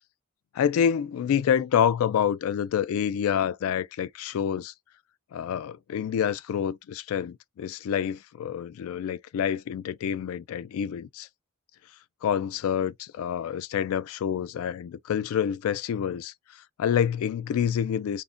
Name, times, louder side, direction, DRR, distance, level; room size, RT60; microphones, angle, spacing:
voice 1, 0.5-4.7 5.3-11.3 12.2-18.2, left 8 dB, 75° left, 0.3 m, -27 dB
2.3 x 2.1 x 3.6 m
head